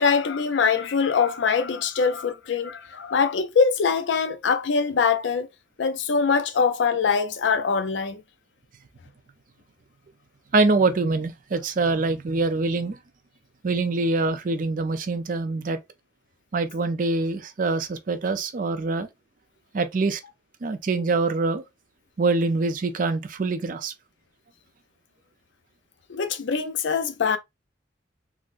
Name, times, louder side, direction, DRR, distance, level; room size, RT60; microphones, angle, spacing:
voice 1, 0.0-5.5 5.8-8.2 26.1-27.4, left 5 dB, 85° left, 0.5 m, -23 dB
voice 2, 10.5-13.0 13.6-15.8 16.5-19.1 19.7-20.2 20.6-21.6 22.2-23.9, right 3 dB, 45° right, 0.4 m, -24 dB
3.7 x 2.0 x 2.5 m
head